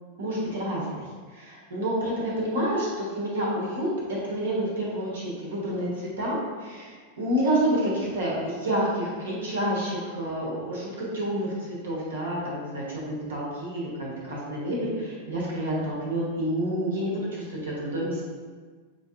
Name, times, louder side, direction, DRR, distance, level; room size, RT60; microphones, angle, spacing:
voice 1, 0.2-1.0 1.3-18.2, right 1 dB, 65° right, -5 dB, 1.1 m, -29 dB
5.6 x 2.7 x 2.4 m, 1.5 s
figure-of-eight pair, 90°, 0 cm